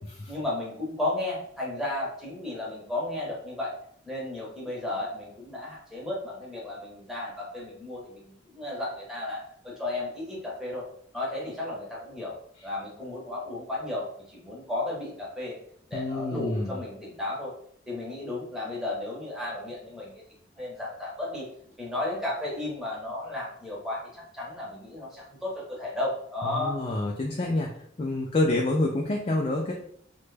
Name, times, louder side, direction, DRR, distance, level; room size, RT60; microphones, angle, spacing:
voice 1, 0.3-3.7 4.1-10.9 11.1-12.4 12.6-15.6 15.9-17.5 17.9-20.2 20.6-21.5 21.8-26.8, left 2 dB, 5° right, -5 dB, 0.9 m, -34 dB
voice 2, 15.9-16.8 26.4-27.7 28.0-29.7, left 2 dB, 30° left, 0 dB, 0.3 m, -27 dB
3.0 x 2.2 x 3.2 m, 0.64 s
head